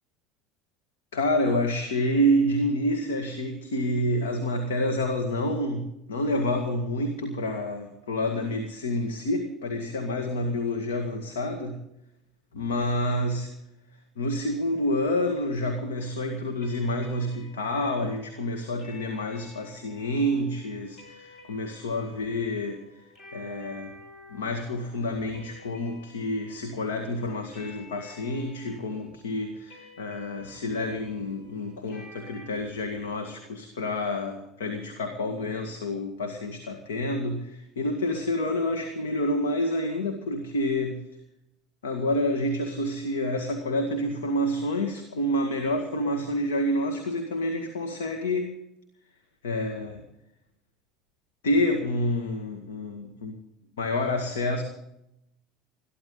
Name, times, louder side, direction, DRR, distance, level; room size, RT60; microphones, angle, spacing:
voice 1, 1.1-11.8 12.5-13.5 14.2-23.0 23.3-23.9 24.3-41.1 41.8-48.6 49.4-50.1 51.4-53.4 53.8-54.6, left 1 dB, 75° left, 4 dB, 2.0 m, -28 dB
sound 1, 16.6-32.4, left 2 dB, 45° left, 8.0 m, -52 dB
22.0 x 14.0 x 3.9 m, 0.80 s
figure-of-eight pair, 70°, 0 cm